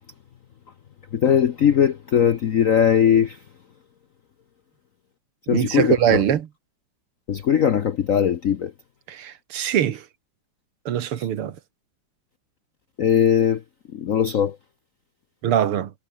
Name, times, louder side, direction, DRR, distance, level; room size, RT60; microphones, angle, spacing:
voice 1, 1.1-3.3 5.5-6.2 7.3-8.7 13.0-13.6 14.0-14.5, left 8 dB, 65° left, 0.8 m, -19 dB
voice 2, 5.5-6.5 9.1-10.0 10.9-11.6 15.4-15.9, right 10 dB, 80° right, 2.3 m, -22 dB
omnidirectional pair, 2.4 m